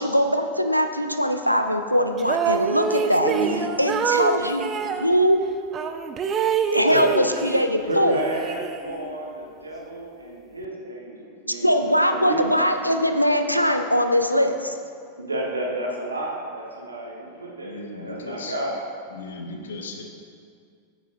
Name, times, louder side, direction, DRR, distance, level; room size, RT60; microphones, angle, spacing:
voice 1, 0.0-3.3 3.8-4.7 5.0-5.4 6.7-8.2 11.6-14.8, equal, 90° left, 6 dB, 0.4 m, -21 dB
sound 1, 2.2-5.1 5.7-7.7 8.0-9.1, right 6 dB, 25° right, 0.4 m, -26 dB
voice 2, 3.2-3.6 6.9-7.0 7.8-11.8 12.1-12.5 15.2-18.8, right 2 dB, 80° right, -1 dB, 1.1 m, -30 dB
voice 3, 17.2-18.6 19.1-20.0, left 3 dB, 65° left, 3 dB, 0.8 m, -37 dB
8.8 x 6.7 x 2.6 m, 2.2 s
figure-of-eight pair, 90°, 0 cm